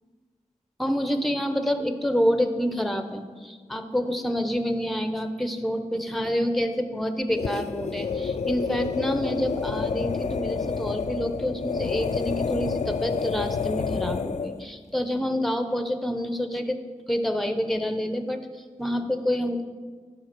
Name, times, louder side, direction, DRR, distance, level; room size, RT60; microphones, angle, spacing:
voice 1, 0.8-16.8 17.1-19.6, equal, ahead, 8 dB, 0.8 m, -27 dB
sound 1, 7.3-14.6, left 5 dB, 60° left, 0.4 m, -29 dB
10.5 x 3.9 x 6.0 m, 1.5 s
cardioid pair, 45°, 14 cm